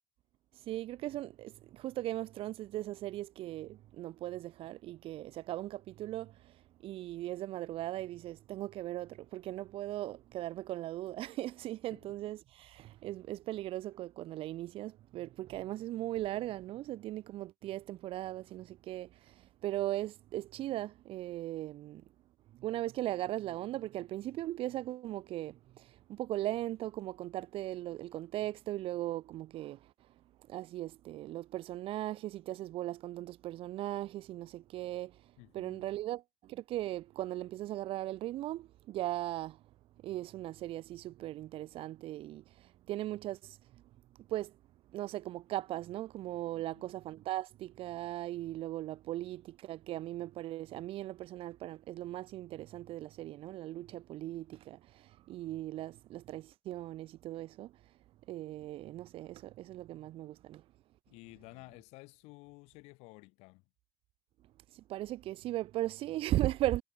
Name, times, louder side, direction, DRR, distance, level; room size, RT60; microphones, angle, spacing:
voice 1, 0.7-6.6 6.8-22.0 22.5-29.8 30.5-35.2 35.5-39.6 40.0-43.8 44.3-44.6 44.9-57.7 58.3-60.6 64.7-66.8, right 15 dB, 60° right, 0.6 m, -38 dB
voice 2, 35.4-35.9 46.5-46.9 61.1-63.6, left 25 dB, 90° left, 2.4 m, -54 dB
cardioid pair, 120°, 11 cm